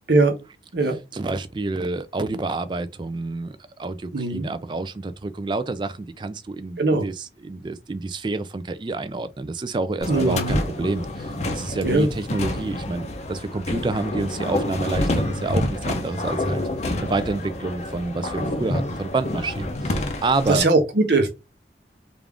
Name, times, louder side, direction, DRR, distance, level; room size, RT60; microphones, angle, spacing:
voice 1, 1.1-16.6 17.0-20.7, right 3 dB, 25° right, 0.3 m, -28 dB
voice 2, 4.1-4.5 6.8-7.0 10.1-10.6 11.8-12.1 20.5-21.3, right 2 dB, 70° right, 0.9 m, -20 dB
sound 1, 10.0-20.6, left 1 dB, 40° left, 0.5 m, -28 dB
3.5 x 2.5 x 3.4 m
head